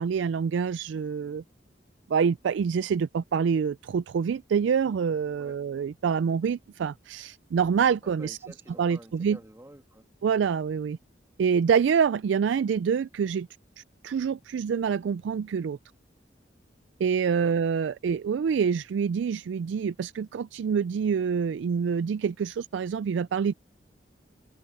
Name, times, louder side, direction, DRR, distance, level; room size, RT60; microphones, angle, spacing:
voice 1, 0.0-1.4 2.1-8.4 8.8-9.4 10.2-11.0 11.4-13.5 13.8-15.8 17.0-23.5, right 6 dB, 75° right, 0.3 m, -26 dB
voice 2, 8.0-10.1 17.3-17.7, right 1 dB, 15° right, 1.8 m, -49 dB
head